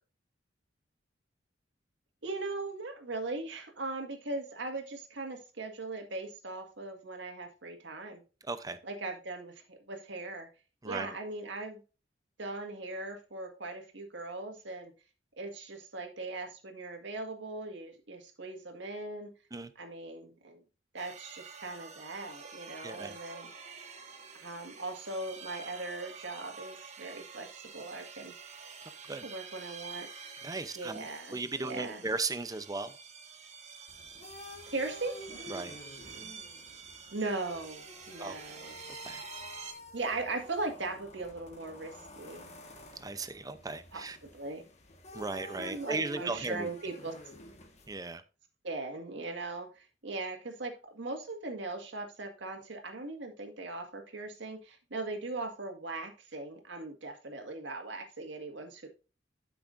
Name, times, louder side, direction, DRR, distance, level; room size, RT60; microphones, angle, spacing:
voice 1, 2.2-8.2 8.8-10.5 10.8-11.8 12.4-14.9 15.4-19.3 19.8-20.6 20.9-23.5 24.4-28.3 29.2-30.1 30.8-32.0 34.7-35.2 37.1-38.8 39.9-42.5 43.9-44.6 45.1-47.2 48.6-58.9, right 2 dB, 75° right, 4 dB, 1.9 m, -39 dB
voice 2, 8.4-8.8 10.8-11.1 19.5-19.7 22.8-23.2 29.1-29.2 30.4-32.9 35.5-35.8 38.2-38.4 38.9-39.2 43.0-44.2 45.1-46.7 47.9-48.2, right 3 dB, 20° right, 11 dB, 0.6 m, -37 dB
sound 1, 21.0-39.7, right 5 dB, 40° right, 1.4 m, -48 dB
sound 2, 33.9-48.0, left 1 dB, 40° left, 1.5 m, -50 dB
12.0 x 6.0 x 2.6 m, 0.33 s
head